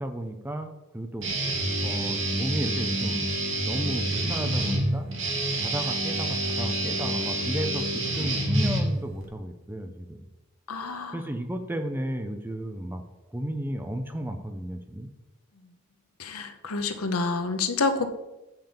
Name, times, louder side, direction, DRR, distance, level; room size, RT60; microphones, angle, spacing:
voice 1, 0.0-1.4 1.8-3.2 3.6-5.1 5.6-10.2 11.1-13.0 13.3-15.1, right 1 dB, 10° right, 6 dB, 0.5 m, -33 dB
Guitar, 1.2-9.2, right 1 dB, 60° right, 2.0 m, -27 dB
voice 2, 10.7-11.2 15.6-15.7 16.2-18.1, left 4 dB, 85° left, 8 dB, 0.8 m, -28 dB
7.0 x 5.8 x 5.2 m, 0.98 s
head